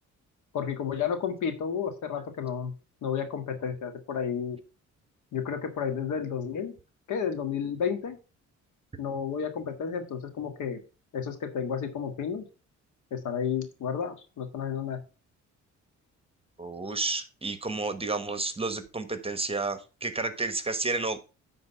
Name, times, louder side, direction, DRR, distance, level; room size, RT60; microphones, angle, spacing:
voice 1, 0.5-2.7 3.0-4.6 5.3-6.7 7.1-8.2 9.0-10.8 11.1-12.4 13.1-15.0, left 7 dB, 80° left, 7 dB, 1.7 m, -31 dB
voice 2, 16.6-21.2, right 3 dB, 20° right, 11 dB, 1.2 m, -31 dB
9.7 x 3.9 x 5.6 m, 0.33 s
cardioid pair, 90°, 30 cm